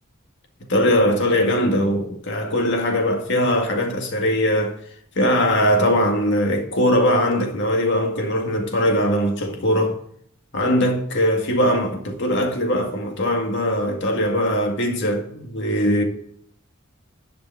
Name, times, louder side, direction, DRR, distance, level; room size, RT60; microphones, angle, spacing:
voice 1, 0.7-4.8 5.2-9.9 10.5-16.0, equal, 60° left, 2.0 m, -20 dB
11.0 x 5.2 x 8.3 m
head